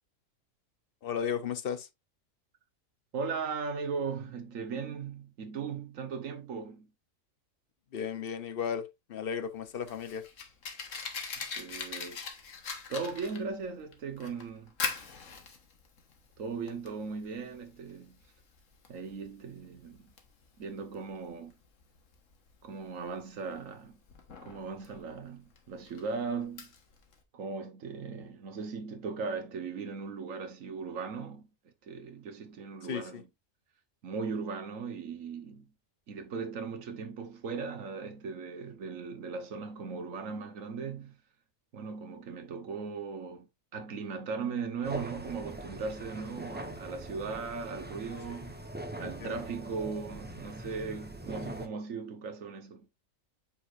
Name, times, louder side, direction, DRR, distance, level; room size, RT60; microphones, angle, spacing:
voice 1, 1.0-1.9 7.9-10.2 32.9-33.2 49.0-49.4, left 7 dB, 50° left, 0.9 m, -35 dB
voice 2, 3.1-6.9 11.4-12.2 12.9-14.7 16.4-18.2 18.9-20.1 20.6-21.5 22.6-24.0 24.4-26.7 27.3-31.5 31.8-33.3 34.0-35.7 36.1-41.2 41.7-48.6 49.0-52.9, right 5 dB, 80° right, 1.5 m, -38 dB
Fire, 9.5-27.2, left 5 dB, 70° left, 1.6 m, -43 dB
sound 1, 44.8-51.7, right 1 dB, 10° right, 0.9 m, -42 dB
8.4 x 4.9 x 2.5 m
omnidirectional pair, 1.3 m